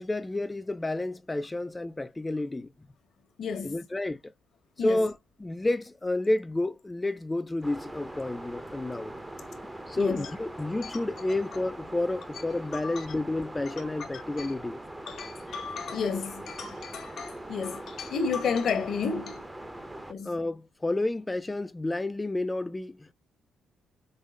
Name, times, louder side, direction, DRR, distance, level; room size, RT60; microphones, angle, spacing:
voice 1, 0.0-2.7 3.6-4.3 4.8-9.1 9.9-14.8 20.2-23.1, left 2 dB, 15° left, 0.4 m, -30 dB
voice 2, 3.4-3.8 4.8-5.0 10.0-10.3 10.8-11.0 12.8-13.0 13.7-13.9 14.4-14.5 15.1-19.4 20.1-20.4, left 5 dB, 60° left, 1.2 m, -32 dB
sound 1, 7.6-20.1, right 1 dB, 10° right, 0.7 m, -42 dB
5.3 x 2.0 x 3.5 m
cardioid pair, 90°, 0 cm